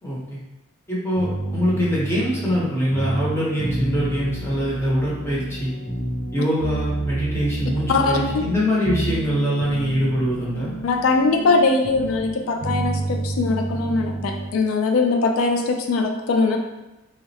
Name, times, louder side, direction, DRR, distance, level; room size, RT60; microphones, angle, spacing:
voice 1, 0.0-0.4 0.9-5.7 6.3-10.7, equal, 15° left, -7 dB, 0.8 m, -23 dB
sound 1, 1.1-14.5, right 2 dB, 55° left, 0.8 m, -29 dB
voice 2, 7.9-8.4 10.8-16.6, left 3 dB, 85° left, 4 dB, 0.3 m, -21 dB
3.6 x 2.1 x 2.7 m, 0.99 s
head